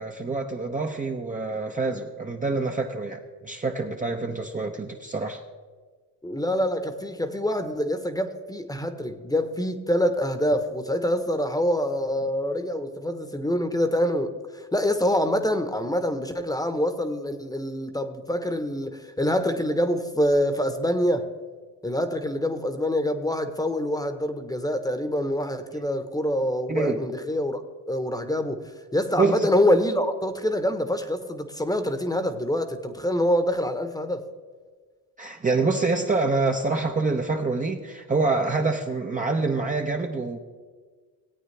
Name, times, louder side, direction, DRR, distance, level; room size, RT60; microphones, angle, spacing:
voice 1, 0.0-5.4 26.7-27.0 29.2-29.5 35.2-40.4, right 3 dB, 20° right, 0.8 m, -26 dB
voice 2, 6.2-21.3 21.8-27.6 27.9-34.2, equal, 10° left, 1.1 m, -25 dB
18.0 x 8.7 x 3.3 m
supercardioid pair, 80°, 44 cm